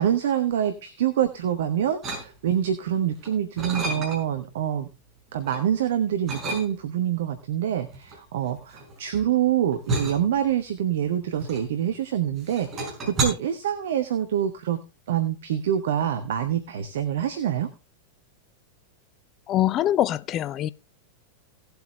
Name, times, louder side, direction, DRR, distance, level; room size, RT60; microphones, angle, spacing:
voice 1, 0.0-4.9 5.3-14.8 15.1-17.7, right 10 dB, 60° right, 1.0 m, -26 dB
sound 1, 2.0-2.7 3.1-4.5 4.9-5.7 6.3-7.1 7.9-12.1 12.4-13.2, right 2 dB, 25° right, 5.5 m, -31 dB
voice 2, 19.5-20.7, left 12 dB, 35° left, 0.5 m, -23 dB
17.5 x 8.0 x 3.2 m
figure-of-eight pair, 90°, 0 cm